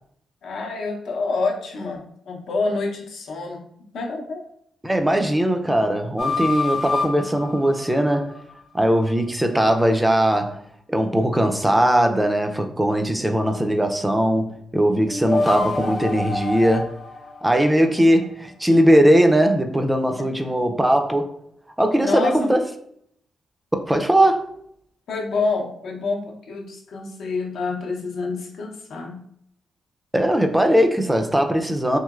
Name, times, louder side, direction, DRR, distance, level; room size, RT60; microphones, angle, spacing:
voice 1, 0.4-3.6 3.9-4.4 20.4-20.5 22.0-22.5 25.1-29.2, left 3 dB, 75° left, 0.6 m, -27 dB
voice 2, 4.8-8.3 8.7-10.6 10.9-16.9 17.4-21.3 21.8-22.6 23.7-24.5 30.1-32.0, right 1 dB, 10° right, 0.3 m, -19 dB
sound 1, 6.2-8.5 15.0-18.4, left 3 dB, 35° left, 0.7 m, -27 dB
3.0 x 2.8 x 2.3 m
cardioid pair, 100°, 0 cm